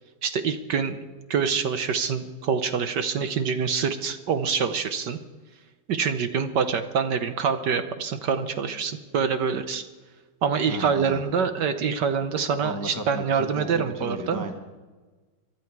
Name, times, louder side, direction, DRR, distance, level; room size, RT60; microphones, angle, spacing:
voice 1, 0.2-1.0 1.3-5.2 5.9-9.8 10.4-14.4, right 6 dB, 65° right, 9 dB, 1.3 m, -25 dB
voice 2, 10.7-11.2 12.6-14.5, equal, 15° left, 5 dB, 0.7 m, -35 dB
23.5 x 11.5 x 4.7 m, 1.3 s
omnidirectional pair, 2.3 m